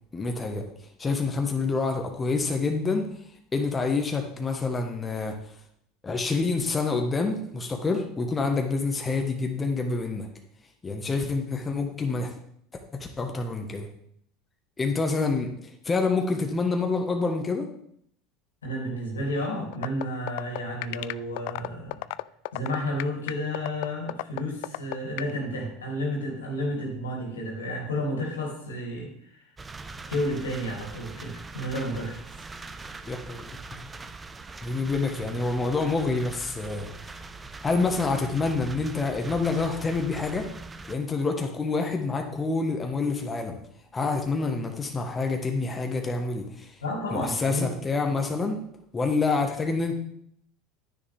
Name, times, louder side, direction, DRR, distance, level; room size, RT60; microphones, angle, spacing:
voice 1, 0.1-0.7 1.0-3.1 3.5-5.4 6.0-10.3 10.8-12.3 12.9-13.9 14.8-17.7 33.1-33.4 34.6-36.9 37.6-40.5 40.9-43.6 43.9-46.8 47.1-48.6 48.9-50.0, left 3 dB, 20° left, 3 dB, 1.4 m, -27 dB
voice 2, 18.6-22.0 22.5-29.4 30.1-32.2 46.8-47.6, left 1 dB, 80° left, -1 dB, 3.0 m, -31 dB
sound 1, 19.7-25.3, left 22 dB, 60° left, 0.3 m, -31 dB
sound 2, 29.6-41.0, right 3 dB, 20° right, 0.9 m, -42 dB
10.5 x 9.9 x 3.5 m, 0.69 s
figure-of-eight pair, 75°, 0 cm